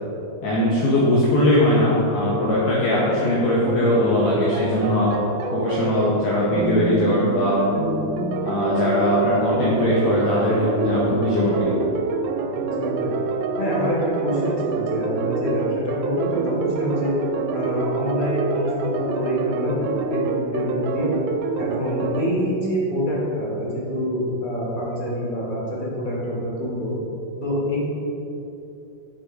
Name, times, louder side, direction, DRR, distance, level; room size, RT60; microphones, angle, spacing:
voice 1, 0.4-5.1 5.5-7.7 8.4-11.7, left 1 dB, 55° left, -6 dB, 1.4 m, -20 dB
sound 1, 3.7-22.3, right 4 dB, 75° right, 1.3 m, -27 dB
voice 2, 12.5-13.2 13.6-17.1 17.5-21.1 21.6-26.9 27.4-27.8, equal, 25° left, -6 dB, 1.5 m, -26 dB
7.4 x 4.7 x 4.7 m, 3.0 s
omnidirectional pair, 2.2 m